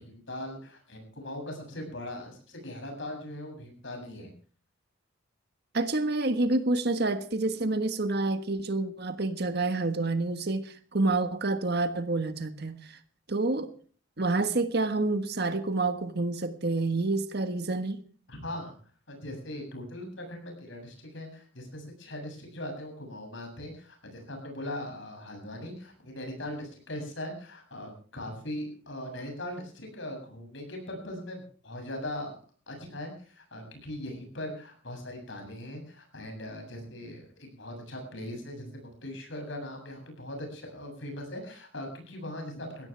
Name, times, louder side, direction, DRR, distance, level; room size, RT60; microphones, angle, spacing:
voice 1, 0.0-4.3 18.3-18.8 19.1-32.4 32.7-42.9, left 1 dB, 65° left, 7.7 m, -40 dB
voice 2, 5.7-13.0 13.3-13.7 14.2-18.0, right 2 dB, 55° right, 1.5 m, -28 dB
21.5 x 16.5 x 3.4 m
head